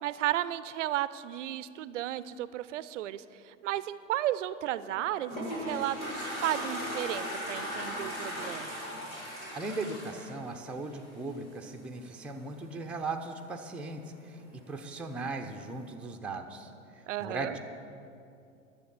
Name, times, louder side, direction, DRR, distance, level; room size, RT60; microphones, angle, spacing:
voice 1, 0.0-8.7 17.1-17.6, right 13 dB, 65° right, 16 dB, 0.5 m, -34 dB
Toilet flush, 4.9-11.3, equal, 85° left, 3.0 m, -37 dB
voice 2, 9.5-17.6, right 3 dB, 5° right, 3 dB, 0.6 m, -38 dB
11.5 x 7.0 x 7.2 m, 2.6 s
figure-of-eight pair, 90°, 40 cm